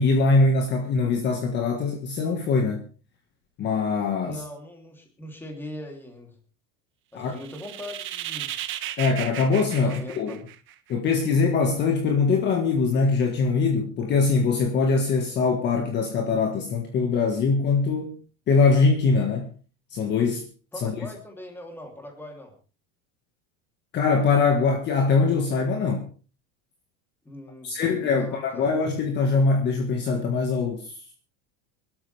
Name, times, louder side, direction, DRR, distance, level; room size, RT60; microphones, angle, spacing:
voice 1, 0.0-2.8 3.6-4.4 7.1-7.4 9.0-10.4 10.9-18.2 18.5-19.5 19.9-20.5 20.8-20.9 23.9-26.1 27.6-31.0, left 4 dB, 30° left, 1.6 m, -22 dB
voice 2, 4.2-6.4 7.1-8.5 9.8-10.4 20.7-22.5 27.2-28.7, left 1 dB, 5° left, 3.1 m, -40 dB
sound 1, 7.3-10.9, right 13 dB, 35° right, 1.2 m, -35 dB
23.5 x 12.5 x 3.4 m
cardioid pair, 175°, 37 cm